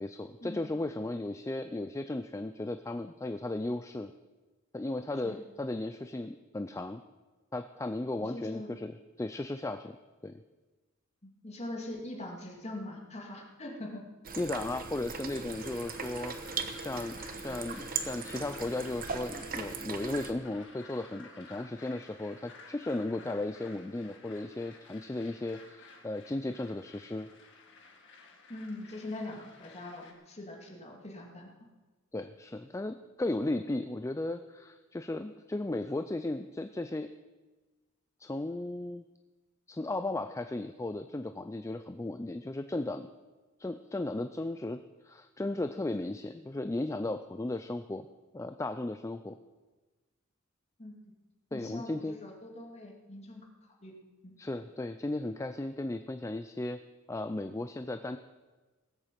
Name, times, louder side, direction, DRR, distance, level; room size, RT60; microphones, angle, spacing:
voice 1, 0.0-4.1 4.7-7.0 7.5-10.0 10.2-10.4 14.4-16.3 16.8-27.3 32.1-37.1 38.2-39.0 39.7-43.1 43.6-48.1 48.3-49.4 51.5-52.2 54.4-56.8 57.1-58.2, left 2 dB, 15° left, 9 dB, 0.4 m, -35 dB
voice 2, 8.2-8.7 11.2-14.0 28.5-31.5 50.8-51.0 51.5-53.4 53.8-53.9 54.2-54.3, left 1 dB, 30° left, 0 dB, 2.5 m, -42 dB
sound 1, 14.2-20.3, right 5 dB, 45° right, 1.1 m, -39 dB
sound 2, 15.5-30.1, left 4 dB, 60° left, 2.1 m, -54 dB
18.0 x 8.2 x 7.5 m, 1.2 s
head